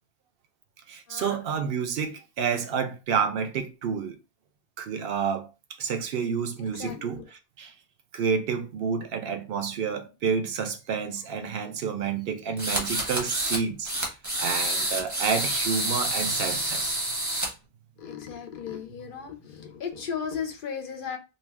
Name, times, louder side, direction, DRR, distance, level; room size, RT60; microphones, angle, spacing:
voice 1, 0.9-4.2 4.8-5.5 5.8-7.2 7.6-7.7 8.1-13.9 14.4-17.0, right 6 dB, 70° right, 0.7 m, -29 dB
voice 2, 6.6-7.2 18.0-21.2, left 7 dB, 60° left, 0.7 m, -36 dB
sound 1, 12.6-13.6 13.9-17.5, right 1 dB, 20° right, 0.7 m, -28 dB
2.4 x 2.2 x 3.3 m
omnidirectional pair, 1.0 m